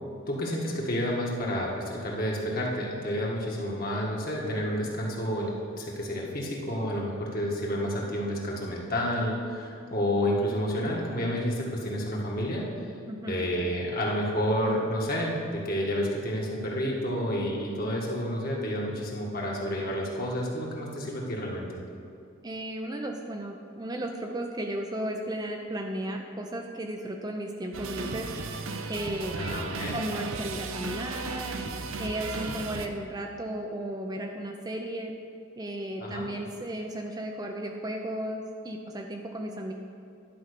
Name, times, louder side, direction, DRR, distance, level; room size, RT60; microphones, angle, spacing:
voice 1, 0.3-12.7 13.3-21.8 29.3-30.0 36.0-36.3, equal, 45° left, -2 dB, 1.7 m, -30 dB
voice 2, 13.1-13.4 22.4-28.3 28.9-29.4 29.9-31.6 32.0-35.1 35.6-39.7, right 1 dB, 20° right, 2 dB, 0.5 m, -34 dB
sound 1, 27.7-32.9, right 4 dB, 75° right, 0.6 m, -35 dB
11.0 x 5.3 x 6.8 m, 2.5 s
head